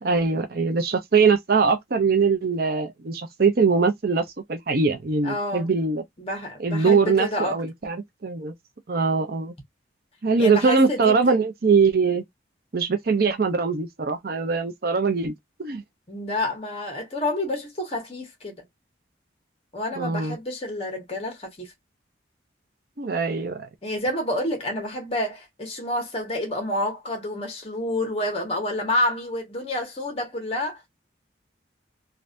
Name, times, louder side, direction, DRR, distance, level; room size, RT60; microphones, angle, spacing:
voice 1, 0.0-6.0 6.6-8.5 8.9-9.5 10.2-12.2 12.7-15.3 15.6-15.8 20.0-20.4 23.0-23.7, right 4 dB, 50° right, 0.6 m, -22 dB
voice 2, 5.2-5.7 6.2-7.6 10.4-11.3 16.1-18.5 19.7-21.7 23.8-30.8, left 1 dB, 30° left, 1.4 m, -28 dB
3.3 x 2.6 x 2.5 m
head